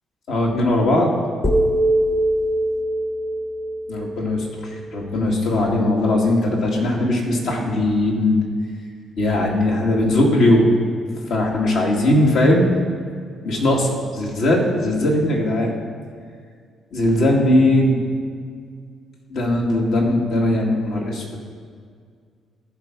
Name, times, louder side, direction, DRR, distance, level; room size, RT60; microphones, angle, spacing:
voice 1, 0.3-1.1 3.9-4.5 4.9-8.4 9.2-10.7 11.3-12.7 13.4-15.7 16.9-18.0 19.3-21.2, left 1 dB, 75° left, -1 dB, 1.9 m, -19 dB
sound 1, 1.4-5.5, right 1 dB, 20° left, 1.0 m, -23 dB
14.0 x 5.1 x 6.0 m, 2.1 s
cardioid pair, 90°, 0 cm